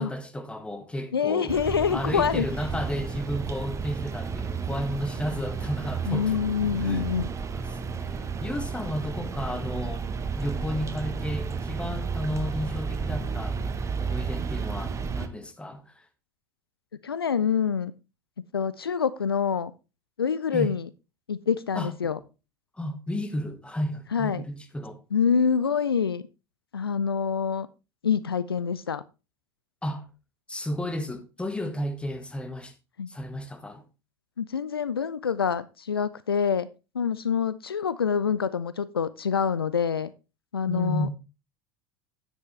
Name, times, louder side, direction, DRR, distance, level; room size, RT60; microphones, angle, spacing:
voice 1, 0.0-1.5 1.9-6.4 6.7-13.6 14.0-16.0 20.5-20.7 21.7-21.9 22.8-25.0 29.8-30.0 30.5-32.7 33.1-33.8 40.7-41.1, equal, 10° left, 1.6 m, -33 dB
voice 2, 1.1-2.5 6.1-7.3 17.0-17.9 18.5-19.7 20.2-20.9 21.3-22.2 24.1-24.4 25.1-26.2 26.7-27.7 28.0-29.0 33.0-33.1 34.4-36.7 36.9-40.1 40.5-41.1, left 7 dB, 85° left, 0.4 m, -26 dB
sound 1, 1.5-15.3, right 5 dB, 25° right, 1.0 m, -32 dB
9.7 x 8.3 x 3.2 m
figure-of-eight pair, 75°, 12 cm